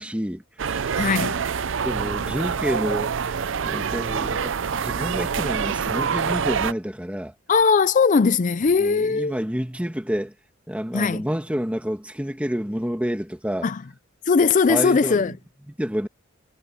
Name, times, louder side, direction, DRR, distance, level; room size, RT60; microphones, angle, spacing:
voice 1, 0.0-0.9 1.8-3.1 3.6-7.3 8.8-10.3 10.7-13.7 14.7-15.3 15.8-16.1, equal, 5° right, 2.0 m, -28 dB
sound 1, 0.6-6.7, right 6 dB, 65° right, 0.5 m, -26 dB
voice 2, 1.0-1.4 7.5-9.4 10.9-11.2 13.6-13.8 14.3-15.3, left 5 dB, 40° left, 0.4 m, -19 dB
head